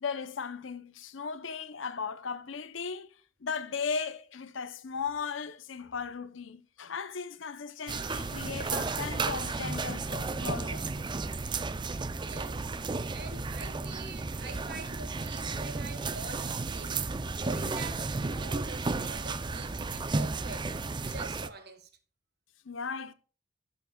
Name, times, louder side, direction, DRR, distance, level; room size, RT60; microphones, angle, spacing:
voice 1, 0.0-3.1 3.4-10.9 22.6-23.1, left 5 dB, 75° left, 0.7 m, -37 dB
sound 1, 7.9-21.5, right 3 dB, 25° right, 0.5 m, -33 dB
voice 2, 12.1-12.7 13.1-17.0 17.4-20.7 21.0-21.9, right 3 dB, 55° right, 1.4 m, -45 dB
13.5 x 7.1 x 2.3 m
head